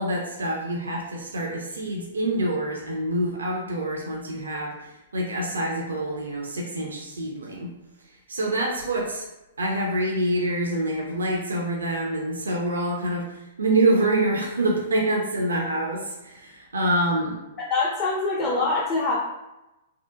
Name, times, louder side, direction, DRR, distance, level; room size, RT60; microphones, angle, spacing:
voice 1, 0.0-7.7 8.1-9.3 9.6-17.4, right 1 dB, 70° right, -1 dB, 0.4 m, -26 dB
voice 2, 17.6-19.1, left 3 dB, 25° left, -5 dB, 0.4 m, -24 dB
2.6 x 2.0 x 2.3 m, 0.98 s
figure-of-eight pair, 110°, 0 cm